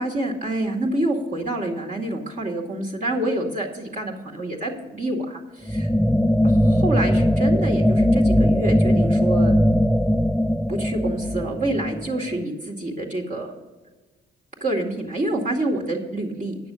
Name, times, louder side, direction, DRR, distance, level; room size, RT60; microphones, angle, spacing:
voice 1, 0.0-5.9 6.4-9.5 10.7-13.5 14.6-16.6, right 1 dB, 40° right, -1 dB, 2.1 m, -27 dB
sound 1, 5.7-12.4, equal, ahead, 0.3 m, -20 dB
9.9 x 6.6 x 6.9 m, 1.3 s
cardioid pair, 90°, 20 cm